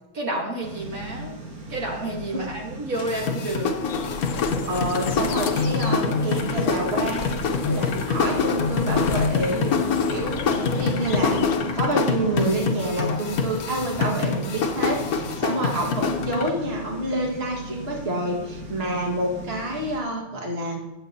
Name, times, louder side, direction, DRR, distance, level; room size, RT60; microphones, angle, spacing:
voice 1, 0.1-1.4 1.7-3.7, right 1 dB, 70° right, -2 dB, 2.0 m, -30 dB
sound 1, 0.6-20.0, right 1 dB, 85° right, 2.1 m, -39 dB
sound 2, 2.9-16.5, left 5 dB, 85° left, 1.4 m, -25 dB
sound 3, 3.9-11.5, left 6 dB, 60° left, 1.0 m, -34 dB
voice 2, 4.7-7.3 7.7-9.8 10.1-11.4 11.7-20.8, right 1 dB, 45° right, -2 dB, 2.1 m, -28 dB
18.5 x 7.4 x 2.9 m, 1.0 s
omnidirectional pair, 1.5 m